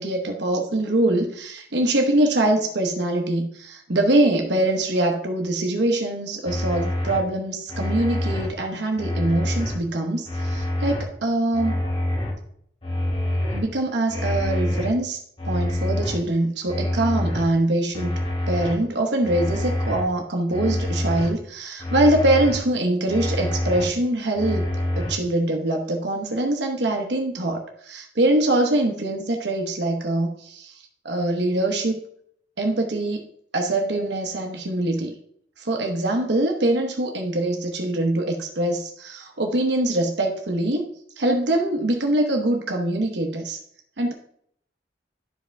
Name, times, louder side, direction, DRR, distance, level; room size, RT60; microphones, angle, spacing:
voice 1, 0.0-11.8 13.5-15.2 15.4-18.2 18.5-32.0 32.6-33.3 33.5-35.1 35.6-43.6 44.0-44.1, right 1 dB, 70° right, 3 dB, 1.0 m, -23 dB
sound 1, 6.4-7.2 7.7-8.5 9.0-9.7 10.2-11.0 11.5-12.3 12.8-13.6 14.1-14.9 15.4-16.2 16.7-17.4 17.9-18.7 19.2-20.0 20.5-21.3 21.8-22.6 23.1-23.8 24.3-25.1, left 1 dB, 35° left, 2.9 m, -26 dB
12.0 x 5.0 x 3.4 m, 0.66 s
head